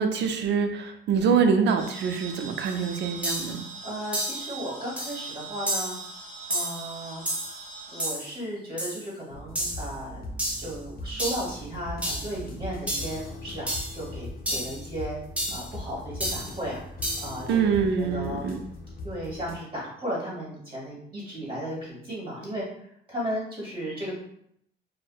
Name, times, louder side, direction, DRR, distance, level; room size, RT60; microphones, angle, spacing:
voice 1, 0.0-3.6 17.5-18.6, right 6 dB, 65° right, 6 dB, 0.4 m, -25 dB
sound 1, 1.8-8.1, right 4 dB, 25° left, 1.1 m, -42 dB
sound 2, 2.6-2.7 3.2-3.6 4.1-4.5 5.0-5.2 5.7-6.0 6.5-6.8 7.3-7.6 8.0-8.3 8.8-9.0 9.6-9.9 10.4-10.7 11.2-11.5 12.0-12.3 12.9-13.2 13.7-14.0 14.5-14.8 15.4-15.7 16.2-16.5 17.0-17.4, right 1 dB, 5° right, 0.6 m, -30 dB
voice 2, 3.8-6.0 6.5-7.2 7.9-10.2 10.6-15.2 15.5-16.8 17.2-18.5 19.0-22.6 23.1-24.1, equal, 25° right, -5 dB, 1.3 m, -35 dB
sound 3, 9.3-19.6, left 1 dB, 50° left, 0.6 m, -40 dB
2.6 x 2.1 x 2.3 m, 0.71 s
cardioid pair, 90°, 20 cm